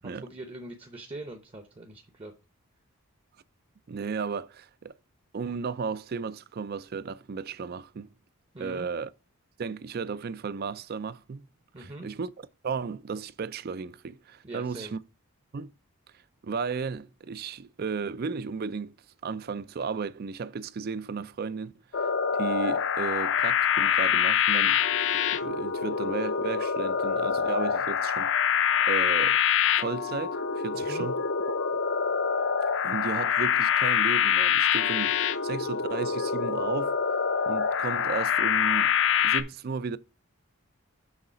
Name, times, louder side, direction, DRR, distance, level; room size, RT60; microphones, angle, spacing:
voice 1, 0.0-2.3 8.5-8.9 11.7-12.1 14.4-14.9 30.7-31.1, right 1 dB, 25° right, 0.7 m, -42 dB
voice 2, 3.9-4.9 5.3-8.1 8.6-9.1 9.6-11.5 11.8-15.0 15.5-15.7 16.4-19.0 19.2-22.1 22.4-24.8 25.4-28.3 28.9-29.4 29.8-31.2 31.5-31.6 32.8-36.9 37.5-38.9 39.2-40.0, right 5 dB, 45° right, 0.4 m, -34 dB
sound 1, 21.9-39.4, left 7 dB, 55° left, 0.6 m, -25 dB
6.4 x 3.9 x 5.6 m
head